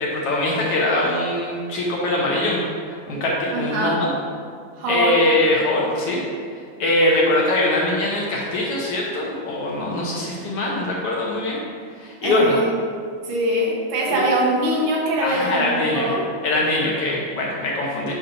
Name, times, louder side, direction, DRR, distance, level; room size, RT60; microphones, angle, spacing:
voice 1, 0.0-2.6 2.9-4.1 4.9-6.2 6.5-11.6 12.0-12.6 14.1-14.2 15.2-16.1 16.4-18.2, left 1 dB, 75° left, -4 dB, 1.4 m, -22 dB
voice 2, 3.5-4.0 4.8-5.2 12.2-12.7 13.2-16.3, right 1 dB, 90° right, -4 dB, 2.9 m, -22 dB
10.0 x 5.7 x 2.7 m, 2.1 s
omnidirectional pair, 3.8 m